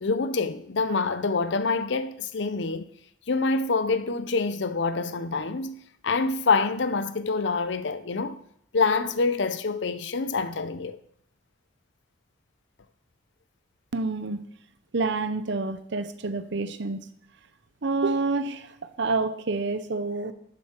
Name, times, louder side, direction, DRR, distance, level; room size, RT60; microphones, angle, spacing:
voice 1, 0.0-2.9 3.3-5.8 6.0-8.4 8.7-11.0, left 4 dB, 60° left, 0.6 m, -26 dB
voice 2, 13.9-14.4 14.9-17.0 17.8-20.3, right 3 dB, 60° right, 0.7 m, -28 dB
11.0 x 7.1 x 4.4 m
head